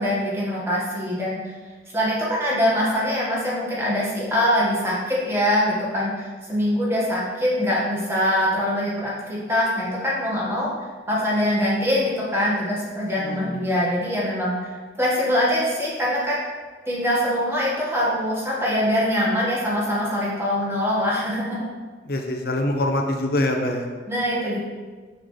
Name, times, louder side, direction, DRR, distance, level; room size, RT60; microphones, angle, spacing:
voice 1, 0.0-1.4 1.9-10.7 11.1-14.7 15.0-16.4 16.8-21.6 24.1-24.6, equal, 15° right, -6 dB, 1.6 m, -23 dB
voice 2, 13.2-13.6 22.1-23.9, left 1 dB, 55° left, 2 dB, 0.9 m, -24 dB
6.9 x 6.1 x 3.3 m, 1.5 s
head